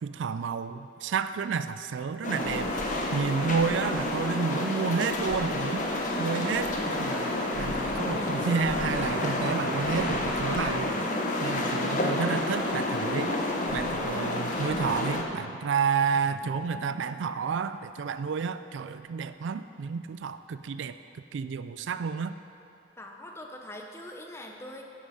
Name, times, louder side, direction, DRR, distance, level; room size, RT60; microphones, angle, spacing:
voice 1, 0.0-5.9 6.2-13.4 13.7-20.9 21.3-22.4, right 6 dB, 75° right, 11 dB, 0.4 m, -31 dB
sound 1, 2.2-15.2, left 1 dB, 40° left, 0.8 m, -29 dB
voice 2, 23.0-24.9, left 1 dB, 15° left, 2 dB, 0.8 m, -42 dB
10.0 x 8.0 x 5.6 m, 2.7 s
head